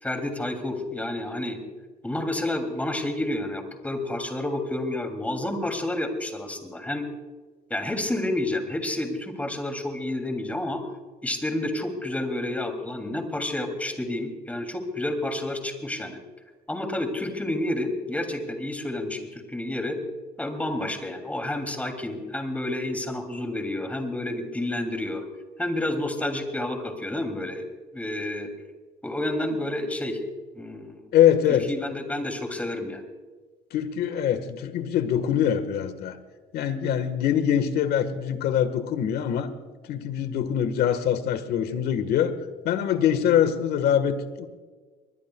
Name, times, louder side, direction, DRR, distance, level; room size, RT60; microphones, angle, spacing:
voice 1, 0.0-1.6 2.0-7.1 7.7-10.8 11.2-16.2 16.7-20.0 20.4-25.2 25.6-27.6 27.9-28.5 29.0-30.2 30.5-31.1 31.5-33.1, left 1 dB, 10° left, 4 dB, 2.9 m, -30 dB
voice 2, 31.1-31.7 33.7-36.2 36.5-39.5 39.9-42.3 42.6-44.5, left 9 dB, 70° left, 11 dB, 1.6 m, -23 dB
24.5 x 21.5 x 2.4 m, 1.4 s
cardioid pair, 120°, 17 cm